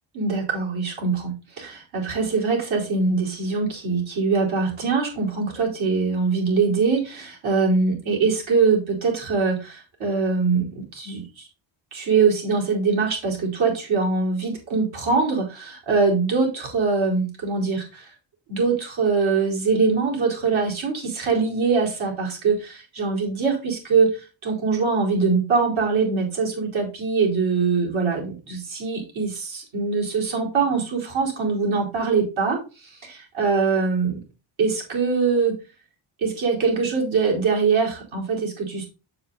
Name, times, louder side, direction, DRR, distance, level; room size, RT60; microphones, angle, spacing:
voice 1, 0.1-11.5 11.9-18.1 18.5-34.2 34.6-35.6 36.2-38.9, right 4 dB, 75° right, -2 dB, 4.7 m, -23 dB
7.1 x 6.9 x 4.0 m, 0.31 s
cardioid pair, 80°, 48 cm